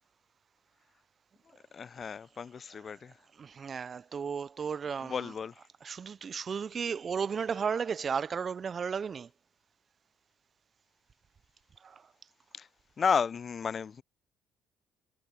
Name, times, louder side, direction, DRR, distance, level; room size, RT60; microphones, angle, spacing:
voice 1, 1.7-3.1 5.0-5.5 12.6-12.7 13.0-14.0, left 6 dB, 45° left, 0.7 m, -32 dB
voice 2, 3.4-5.3 5.8-9.3 11.8-12.1, right 6 dB, 45° right, 0.5 m, -34 dB
hypercardioid pair, 55°, 0 cm